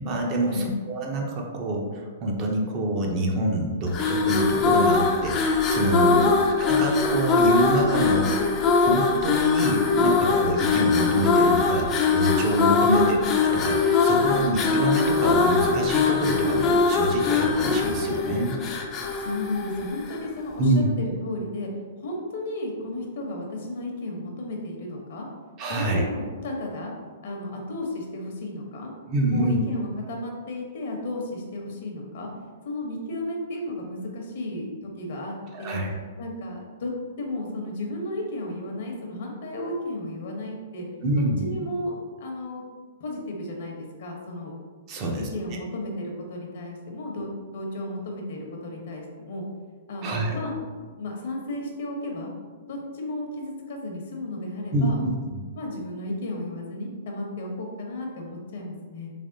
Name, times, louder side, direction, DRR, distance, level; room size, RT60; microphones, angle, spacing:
voice 1, 0.0-6.3 6.6-13.2 13.5-18.6 20.6-20.9 25.6-26.0 29.1-29.6 35.5-35.9 41.0-41.5 44.9-45.2 50.0-50.4 54.7-55.4, right 1 dB, 35° right, 1 dB, 0.6 m, -26 dB
sound 1, 3.9-20.3, left 4 dB, 30° left, 0.4 m, -22 dB
voice 2, 6.1-6.4 12.8-13.1 19.2-21.7 22.0-25.3 25.7-26.9 27.2-28.9 29.3-32.3 32.6-35.8 36.2-36.9 37.2-40.9 41.2-42.6 43.0-44.5 45.0-49.5 49.9-50.5 51.0-52.3 52.7-55.0 55.6-59.1, left 1 dB, 65° left, 0 dB, 0.8 m, -33 dB
3.3 x 3.2 x 2.6 m, 1.5 s
hypercardioid pair, 140°, 0 cm